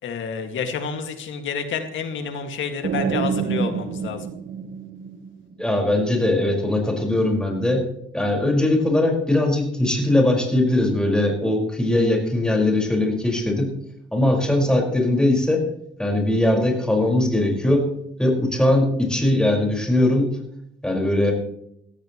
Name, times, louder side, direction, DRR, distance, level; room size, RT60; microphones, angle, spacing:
voice 1, 0.0-4.3, left 6 dB, 75° left, 6 dB, 2.2 m, -29 dB
sound 1, 2.8-5.6, right 6 dB, 50° right, 1.2 m, -27 dB
voice 2, 5.6-7.9 8.1-13.7 14.1-15.6 16.0-17.9 18.2-20.3 20.8-21.3, left 1 dB, 5° left, 0 dB, 5.2 m, -20 dB
17.0 x 16.0 x 3.2 m, 0.77 s
cardioid pair, 90°, 20 cm